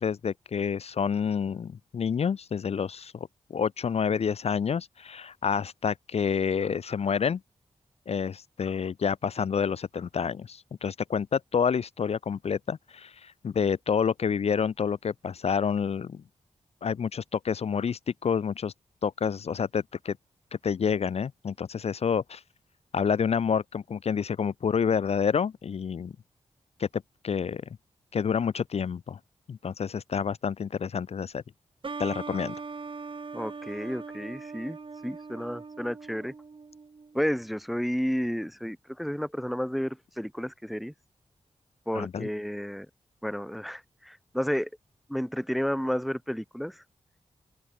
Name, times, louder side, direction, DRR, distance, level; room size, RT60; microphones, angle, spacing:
voice 1, 0.0-3.1 3.5-7.4 8.1-16.2 16.8-18.7 19.0-20.2 20.6-22.4 22.9-26.1 26.8-27.6 28.1-29.2 29.5-31.4 32.0-32.6 41.9-42.3, left 6 dB, 55° left, 0.4 m, -28 dB
sound 1, 31.8-37.3, right 4 dB, 40° right, 0.9 m, -41 dB
voice 2, 33.3-34.8 35.0-36.3 37.1-40.9 41.9-42.9 43.2-44.7 45.1-46.8, equal, ahead, 0.6 m, -31 dB
cardioid pair, 45°, 13 cm